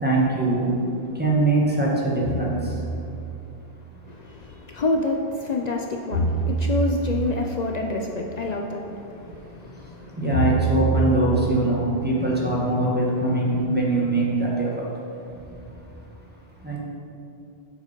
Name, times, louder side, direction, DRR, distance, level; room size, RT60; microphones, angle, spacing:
voice 1, 0.0-0.6 1.2-2.5 10.2-14.7 16.6-16.8, right 2 dB, 10° right, -5 dB, 1.2 m, -22 dB
sound 1, 2.2-3.0 6.1-7.2 10.3-11.2, right 3 dB, 85° right, 2.1 m, -25 dB
voice 2, 4.1-10.5, left 2 dB, 55° left, 2 dB, 0.5 m, -28 dB
6.6 x 4.7 x 5.2 m, 2.7 s
omnidirectional pair, 1.1 m